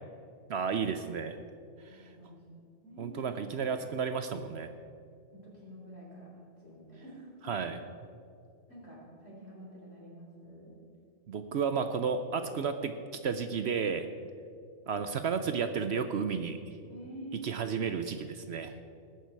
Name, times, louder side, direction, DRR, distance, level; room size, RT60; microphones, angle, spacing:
voice 1, 0.5-1.4 3.0-4.7 7.5-7.8 11.3-14.1 14.9-16.6 17.4-18.8, right 6 dB, 60° right, 9 dB, 0.8 m, -32 dB
voice 2, 1.9-2.4 2.8-3.4 5.3-7.5 8.7-10.7 16.9-17.5, right 1 dB, 55° left, -5 dB, 4.6 m, -48 dB
19.5 x 9.3 x 4.6 m, 2.4 s
omnidirectional pair, 1.3 m